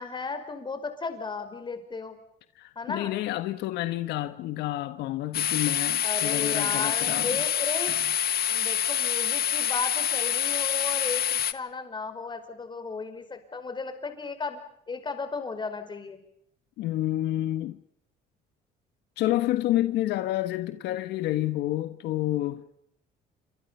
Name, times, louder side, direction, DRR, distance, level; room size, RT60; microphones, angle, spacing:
voice 1, 0.0-2.2 2.7-3.1 6.0-7.9 8.5-14.6 14.9-16.2, left 4 dB, 25° left, 5.2 m, -35 dB
voice 2, 2.5-7.5 7.9-8.1 16.8-17.8 19.2-22.6, left 15 dB, 85° left, 1.4 m, -29 dB
sound 1, 5.3-11.5, left 10 dB, 65° left, 1.4 m, -26 dB
28.5 x 25.5 x 5.7 m
cardioid pair, 110°, 17 cm